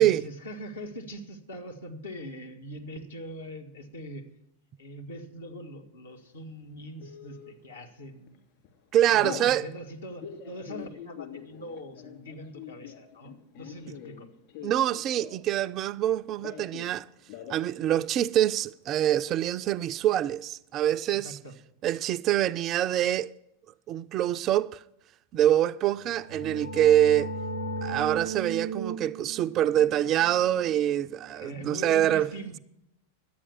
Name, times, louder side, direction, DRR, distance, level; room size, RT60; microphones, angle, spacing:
voice 1, 0.0-4.3 4.8-8.4 9.1-14.3 21.1-21.5 31.3-32.6, equal, 70° left, 1.4 m, -42 dB
Telephone, 7.0-7.5 8.1-8.4 8.6-9.5 10.1-15.6 15.8-16.9 17.2-17.7 18.0-18.1 18.3-18.9, left 9 dB, 45° left, 2.8 m, -43 dB
voice 2, 8.9-9.7 14.6-17.1 17.5-21.4 21.8-23.3 23.9-24.8 25.3-27.3 27.8-32.3, right 12 dB, 35° right, 0.3 m, -25 dB
sound 1, 25.9-31.5, right 2 dB, 90° left, 1.8 m, -37 dB
11.0 x 8.6 x 6.9 m
figure-of-eight pair, 90°, 0 cm